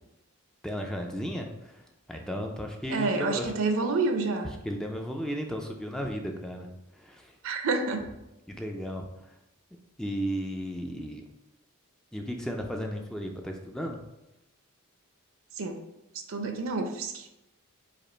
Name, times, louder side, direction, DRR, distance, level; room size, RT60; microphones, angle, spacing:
voice 1, 0.6-3.5 4.4-7.4 8.5-9.3 10.0-11.3 12.1-14.0, equal, 5° left, 2 dB, 0.3 m, -35 dB
voice 2, 2.9-4.5 7.4-8.1 15.6-15.8 16.3-17.3, right 3 dB, 65° right, 5 dB, 0.6 m, -28 dB
5.0 x 2.4 x 4.3 m, 0.91 s
head